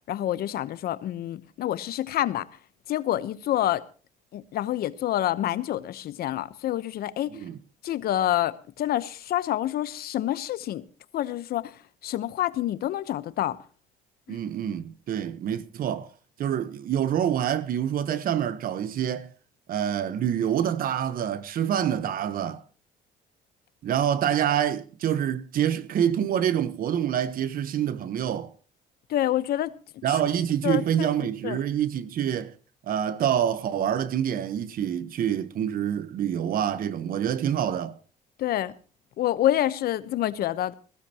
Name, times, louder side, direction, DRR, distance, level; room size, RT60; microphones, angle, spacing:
voice 1, 0.1-2.5 2.9-3.8 4.3-7.4 7.8-10.8 11.1-11.8 12.0-13.6 14.3-14.4 29.1-29.7 30.6-31.6 38.4-38.7 39.2-40.7, left 13 dB, 65° left, 1.0 m, -27 dB
voice 2, 14.3-16.1 16.4-19.3 19.7-22.6 23.8-28.5 30.0-32.5 32.9-37.9, right 9 dB, 55° right, 1.1 m, -26 dB
20.5 x 16.0 x 2.9 m
cardioid pair, 110°, 17 cm